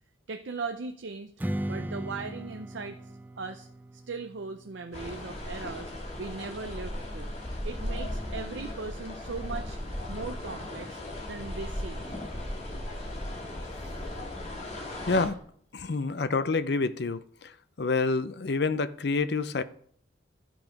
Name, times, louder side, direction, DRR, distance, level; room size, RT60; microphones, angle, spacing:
voice 1, 0.3-1.3 1.7-3.0 3.4-3.7 4.1-7.3 7.6-9.8 10.1-11.0 11.3-12.1 15.8-16.1, right 4 dB, 70° right, 0.6 m, -38 dB
Strum, 1.4-6.6, right 1 dB, 10° right, 0.4 m, -39 dB
sound 1, 4.9-15.3, left 1 dB, 35° left, 2.2 m, -37 dB
voice 2, 15.1-15.4 15.7-17.5 17.8-19.6, left 3 dB, 55° left, 0.5 m, -28 dB
13.0 x 6.0 x 5.1 m
head